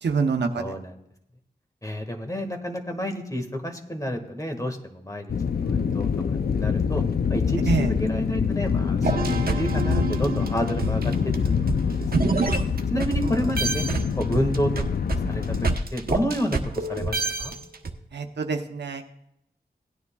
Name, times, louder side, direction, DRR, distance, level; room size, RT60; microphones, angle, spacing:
voice 1, 0.0-0.6 7.7-7.9 13.2-13.4 18.1-19.0, right 5 dB, 90° right, 5 dB, 0.8 m, -26 dB
voice 2, 0.6-0.9 1.8-6.1 6.5-7.0 7.3-11.3 11.6-12.5 12.9-13.8 14.2-14.7 15.1-15.4 15.9-17.5, equal, 20° left, 4 dB, 1.8 m, -30 dB
sound 1, 5.3-15.8, left 6 dB, 60° left, 0.5 m, -25 dB
sound 2, 9.0-13.2 13.6-17.9, right 4 dB, 60° right, 0.9 m, -27 dB
17.5 x 9.6 x 2.3 m, 0.77 s
cardioid pair, 50°, 17 cm